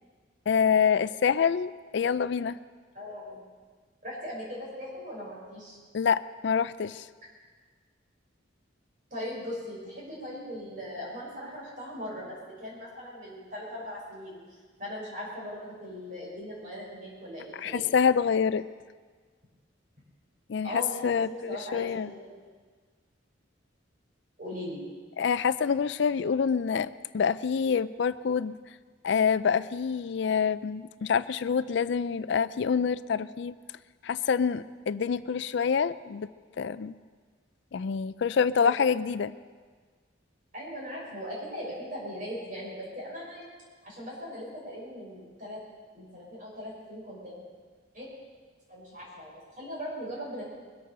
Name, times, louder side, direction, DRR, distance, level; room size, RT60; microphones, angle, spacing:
voice 1, 0.5-2.6 5.9-7.1 17.6-18.6 20.5-22.1 25.2-28.6 29.0-33.5 34.0-36.3 36.6-37.0 37.7-39.3, left 6 dB, 65° left, 16 dB, 0.4 m, -26 dB
voice 2, 2.9-3.4 4.0-5.8 9.1-14.4 14.8-18.0 20.6-21.0 21.3-22.3 24.4-24.8 38.6-38.7 40.5-43.4 43.8-45.6 45.9-47.4 47.9-48.1 48.7-50.4, equal, 45° right, -5 dB, 5.9 m, -39 dB
22.0 x 8.7 x 6.7 m, 1.5 s
head